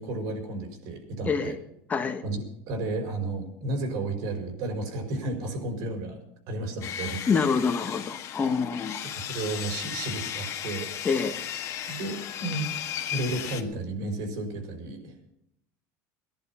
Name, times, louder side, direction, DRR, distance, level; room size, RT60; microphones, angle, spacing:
voice 1, 0.0-1.5 2.2-7.2 9.0-11.2 11.9-12.7 13.1-15.3, right 2 dB, 70° right, 5 dB, 4.9 m, -33 dB
voice 2, 1.2-1.6 1.9-2.2 7.3-9.0 11.0-11.4, left 5 dB, 20° left, 6 dB, 1.3 m, -26 dB
Sawing, 6.8-13.6, left 10 dB, 45° left, 1.7 m, -35 dB
18.0 x 11.0 x 5.6 m, 0.77 s
cardioid pair, 140°, 7 cm